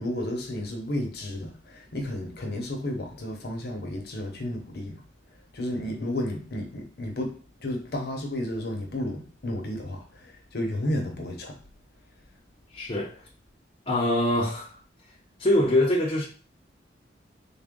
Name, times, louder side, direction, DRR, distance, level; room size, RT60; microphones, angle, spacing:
voice 1, 0.0-5.0 5.5-11.6, left 1 dB, 60° left, 0.8 m, -32 dB
voice 2, 12.7-13.2 13.9-14.8 15.4-16.3, left 1 dB, 30° left, 0.6 m, -24 dB
3.6 x 2.2 x 3.6 m
head